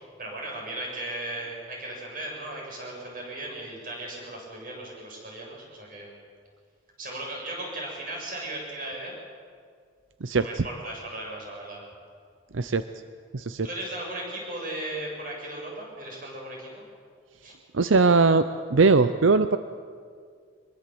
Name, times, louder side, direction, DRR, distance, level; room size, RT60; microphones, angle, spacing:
voice 1, 0.2-6.1 7.0-9.2 10.4-11.8 13.6-16.8 17.4-17.5, right 1 dB, 45° right, -1 dB, 7.2 m, -36 dB
voice 2, 10.2-10.6 12.5-12.8 13.3-13.7 17.7-19.6, right 4 dB, 85° right, 11 dB, 0.7 m, -20 dB
24.0 x 22.0 x 7.8 m, 2.1 s
head